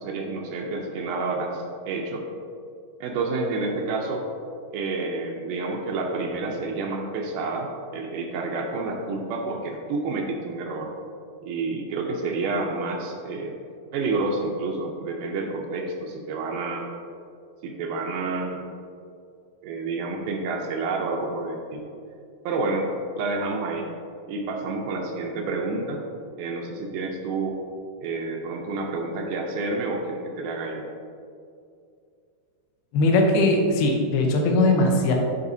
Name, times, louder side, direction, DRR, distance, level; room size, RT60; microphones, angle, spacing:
voice 1, 0.0-2.2 3.0-4.3 4.7-7.7 7.9-10.9 11.5-13.6 13.9-16.9 17.6-18.6 19.6-21.9 22.4-22.9 23.2-23.9 24.3-26.0 26.4-27.6 28.0-30.9, right 3 dB, 85° right, -1 dB, 1.8 m, -29 dB
voice 2, 32.9-35.1, left 2 dB, 80° left, 2 dB, 2.6 m, -20 dB
12.0 x 4.1 x 2.7 m, 2.4 s
omnidirectional pair, 4.4 m